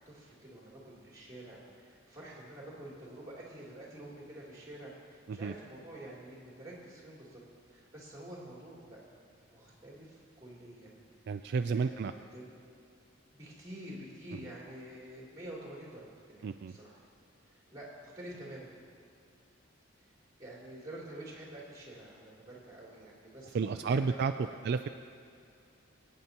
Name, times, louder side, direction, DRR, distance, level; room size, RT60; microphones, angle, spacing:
voice 1, 0.1-7.4 7.7-9.0 9.4-11.0 11.6-12.5 13.3-17.0 17.4-18.7 20.0-20.1 20.4-24.5, right 1 dB, 20° right, -5 dB, 3.1 m, -48 dB
voice 2, 11.3-12.1 14.3-14.4 16.4-16.8 23.5-24.3 24.6-24.9, right 5 dB, 55° right, 8 dB, 0.3 m, -31 dB
24.0 x 9.4 x 2.9 m, 2.5 s
head